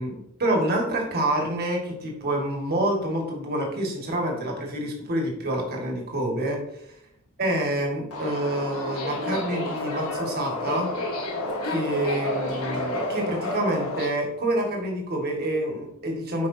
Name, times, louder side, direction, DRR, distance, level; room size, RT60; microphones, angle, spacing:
voice 1, 0.0-6.6 7.4-10.9 11.6-16.5, right 1 dB, 45° right, 0 dB, 1.8 m, -27 dB
Subway metro underground, 8.1-14.1, left 1 dB, 90° left, 1.3 m, -30 dB
8.9 x 5.2 x 2.8 m, 0.77 s
head